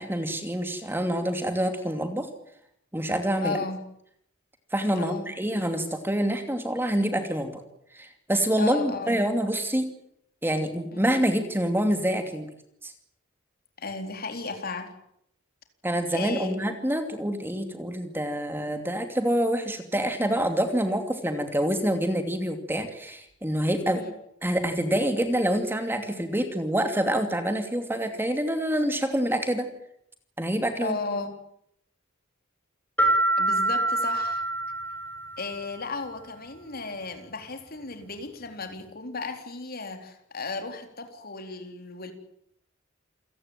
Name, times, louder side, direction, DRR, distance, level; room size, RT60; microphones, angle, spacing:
voice 1, 0.0-2.3 2.9-3.6 4.7-7.6 7.9-9.9 10.4-12.5 12.8-12.9 15.8-24.0 24.4-29.7 30.4-31.0, right 1 dB, 10° right, 7 dB, 2.6 m, -26 dB
voice 2, 3.4-3.8 5.0-5.3 8.6-9.2 10.9-11.1 13.8-14.9 16.1-16.6 23.9-24.1 30.8-31.3 33.4-34.4 35.4-42.1, left 3 dB, 45° left, 6 dB, 4.1 m, -35 dB
sound 1, 33.0-35.6, right 2 dB, 10° left, 5.5 m, -25 dB
28.5 x 18.0 x 9.1 m, 0.75 s
head